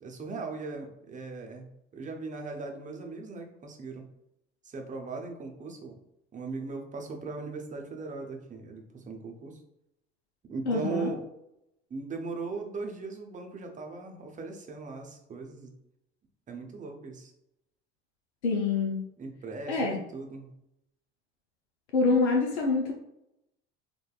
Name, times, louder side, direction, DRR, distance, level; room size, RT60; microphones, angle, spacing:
voice 1, 0.0-1.7 1.9-4.0 4.6-6.0 6.3-9.6 10.5-11.3 11.9-15.7 16.5-17.3 19.2-20.5, right 4 dB, 25° right, 3 dB, 0.6 m, -38 dB
voice 2, 10.7-11.1 18.4-19.0 19.7-20.0 21.9-22.9, left 3 dB, 85° left, 1 dB, 0.5 m, -26 dB
3.3 x 2.2 x 2.3 m, 0.82 s
hypercardioid pair, 65°, 33 cm